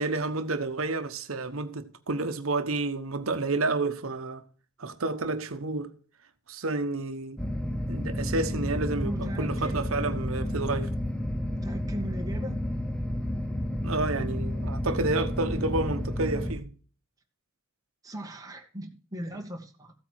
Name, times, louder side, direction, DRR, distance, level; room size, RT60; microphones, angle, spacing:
voice 1, 0.0-4.4 4.8-5.9 6.5-7.4 7.9-10.9 13.8-16.7, right 3 dB, 85° right, 1.1 m, -30 dB
sound 1, 7.4-16.5, left 1 dB, 5° left, 0.9 m, -31 dB
voice 2, 9.1-9.8 11.6-12.6 18.0-19.9, right 1 dB, 15° right, 1.8 m, -38 dB
14.5 x 8.5 x 4.7 m
head